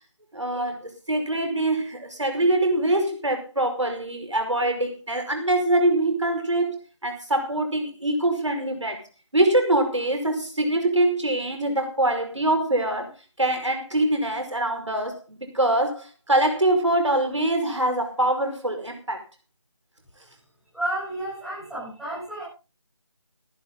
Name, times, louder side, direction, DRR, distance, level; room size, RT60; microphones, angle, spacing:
voice 1, 0.3-9.0 9.3-13.1 13.4-19.2, right 1 dB, 85° right, 5 dB, 5.3 m, -24 dB
voice 2, 20.7-22.4, right 1 dB, ahead, -11 dB, 7.7 m, -31 dB
18.0 x 12.0 x 3.9 m, 0.32 s
figure-of-eight pair, 165°, 15 cm